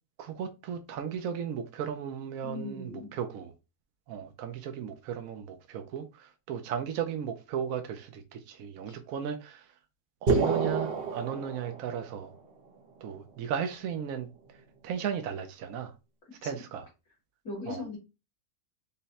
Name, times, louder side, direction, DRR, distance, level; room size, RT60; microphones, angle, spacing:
voice 1, 0.2-3.5 4.1-9.7 10.2-12.3 13.0-14.3 14.5-15.9 16.4-16.9 17.7-17.8, right 8 dB, 70° right, 1.0 m, -35 dB
voice 2, 2.4-3.1 8.9-9.0 16.4-16.5 17.4-18.0, left 3 dB, 70° left, 2.6 m, -39 dB
sound 1, 10.3-12.2, right 4 dB, 45° right, 1.0 m, -28 dB
5.5 x 2.1 x 4.0 m
omnidirectional pair, 1.5 m